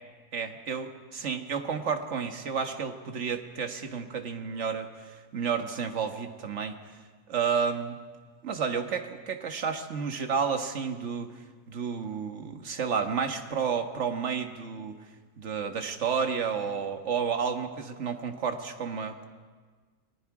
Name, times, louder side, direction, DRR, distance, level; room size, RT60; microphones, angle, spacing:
voice 1, 0.3-6.7 7.3-8.0 8.4-11.3 11.7-14.9 15.4-19.3, right 6 dB, 50° right, 5 dB, 1.7 m, -31 dB
29.5 x 20.5 x 4.9 m, 1.5 s
omnidirectional pair, 1.6 m